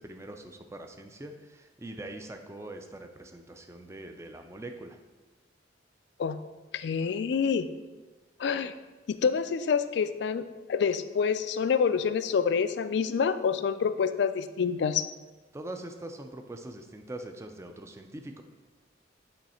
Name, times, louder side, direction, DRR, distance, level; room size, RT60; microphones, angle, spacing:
voice 1, 0.0-5.0 15.5-18.4, right 1 dB, 15° right, 5 dB, 0.4 m, -43 dB
voice 2, 6.7-7.7 8.4-8.7 9.1-15.1, left 6 dB, 60° left, 12 dB, 0.3 m, -27 dB
8.8 x 3.2 x 4.3 m, 1.2 s
head